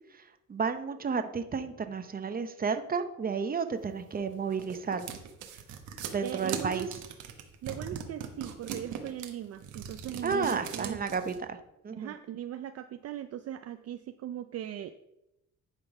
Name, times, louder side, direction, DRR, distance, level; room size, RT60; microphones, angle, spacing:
voice 1, 0.2-5.1 6.1-6.9 10.2-11.6 11.8-12.1, right 5 dB, 30° right, 8 dB, 0.8 m, -32 dB
sound 1, 4.1-11.4, right 8 dB, 80° right, 1.1 m, -40 dB
voice 2, 6.2-6.9 7.6-11.0 11.9-14.9, right 11 dB, 55° right, 9 dB, 0.5 m, -39 dB
10.5 x 3.7 x 4.9 m, 0.87 s
cardioid pair, 90°, 30 cm